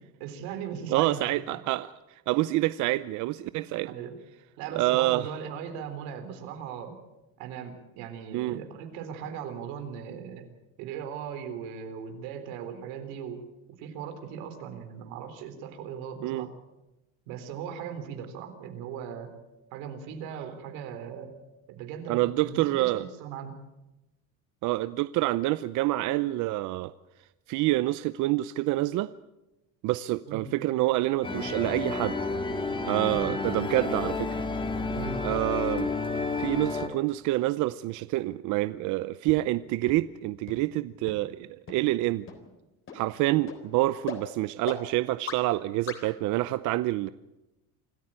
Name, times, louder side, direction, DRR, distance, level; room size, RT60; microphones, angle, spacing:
voice 1, 0.2-1.3 3.5-4.1 4.6-7.0 7.4-10.5 10.8-13.4 13.8-16.5 17.3-19.3 19.7-21.3 21.7-23.6 30.3-30.5 33.1-33.4 34.9-35.2, right 7 dB, 90° right, 7 dB, 3.8 m, -38 dB
voice 2, 0.9-3.9 4.7-5.3 8.3-8.6 16.2-16.5 22.1-23.0 24.6-26.9 27.5-29.1 29.8-32.2 32.8-34.4 35.2-35.9 36.4-42.3 42.9-47.1, right 17 dB, 60° right, 15 dB, 0.7 m, -27 dB
sound 1, 31.2-36.9, left 3 dB, 15° left, 2.1 m, -31 dB
sound 2, 39.3-39.4 39.9-40.0 40.5-40.6 41.1-41.2 41.7-41.8 42.3-42.4 42.9-43.0 43.5-43.6 44.1-44.2 44.7-44.8 45.3-45.4 45.9-46.0, left 7 dB, 35° left, 3.7 m, -36 dB
26.0 x 14.0 x 8.9 m, 0.98 s
cardioid pair, 145°, 34 cm